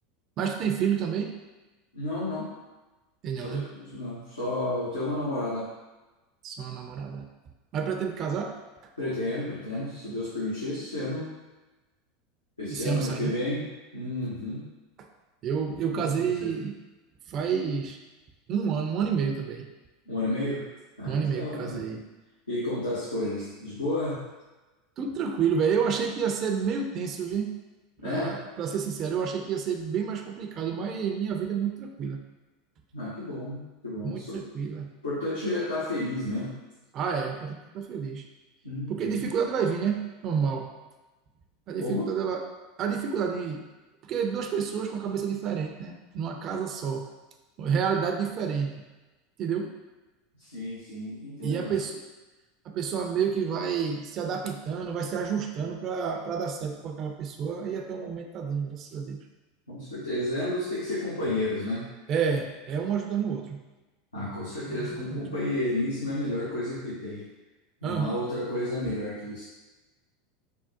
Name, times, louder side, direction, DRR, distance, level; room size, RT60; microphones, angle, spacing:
voice 1, 0.4-1.3 3.2-3.7 6.4-7.3 7.7-8.6 12.7-13.3 15.4-16.8 17.3-18.0 18.5-19.7 21.0-22.1 25.0-27.5 28.0-32.2 34.0-34.9 36.9-38.2 38.9-40.7 41.7-42.4 42.8-43.6 44.0-47.0 47.6-48.8 49.4-49.7 51.4-52.0 52.7-59.2 62.1-63.6 64.7-65.2 67.8-68.2, right 6 dB, 45° right, 3 dB, 0.3 m, -29 dB
voice 2, 1.9-2.5 3.3-5.7 9.0-11.3 12.6-13.7 13.9-14.6 15.8-16.5 20.1-20.6 21.0-21.8 22.5-24.2 28.0-28.4 32.9-34.4 35.0-36.6 38.6-39.3 41.8-42.1 50.4-51.7 59.7-61.9 64.1-67.2 67.8-69.4, left 1 dB, 90° left, -9 dB, 0.7 m, -31 dB
3.5 x 2.0 x 2.6 m, 1.1 s
hypercardioid pair, 85°, 0 cm